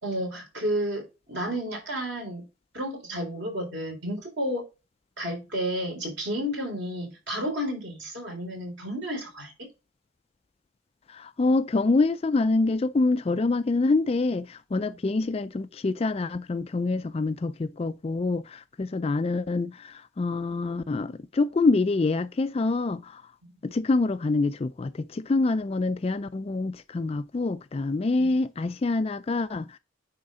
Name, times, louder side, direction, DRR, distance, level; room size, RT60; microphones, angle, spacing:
voice 1, 0.0-2.5 2.7-4.6 5.2-9.7 23.4-23.5 28.2-28.3, equal, 55° right, 3.7 m, -31 dB
voice 2, 11.1-23.2 23.6-29.8, left 3 dB, 30° left, 0.3 m, -26 dB
9.6 x 3.7 x 3.7 m
head